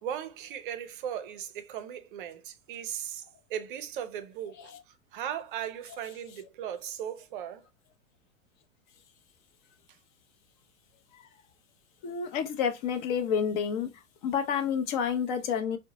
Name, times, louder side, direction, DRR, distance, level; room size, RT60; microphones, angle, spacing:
voice 1, 0.0-3.2 3.5-7.7, right 9 dB, 45° right, 0.6 m, -37 dB
voice 2, 12.0-13.9 14.2-15.8, left 7 dB, 40° left, 0.7 m, -29 dB
3.7 x 2.2 x 2.7 m
figure-of-eight pair, 95°, 38 cm